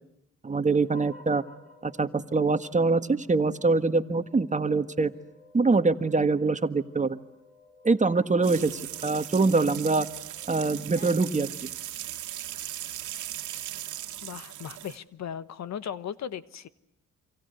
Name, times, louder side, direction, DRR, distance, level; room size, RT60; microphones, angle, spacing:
voice 1, 0.4-1.4 1.8-5.1 5.5-7.2 7.8-10.1 10.5-11.5, right 3 dB, 25° right, 10 dB, 1.6 m, -24 dB
sound 1, 0.8-11.4, left 2 dB, 25° left, 7.2 m, -55 dB
sound 2, 8.4-15.0, right 12 dB, 75° right, 1.9 m, -38 dB
voice 2, 14.2-16.7, left 8 dB, 60° left, 14 dB, 1.4 m, -37 dB
28.0 x 26.5 x 8.1 m, 0.80 s
cardioid pair, 90°, 30 cm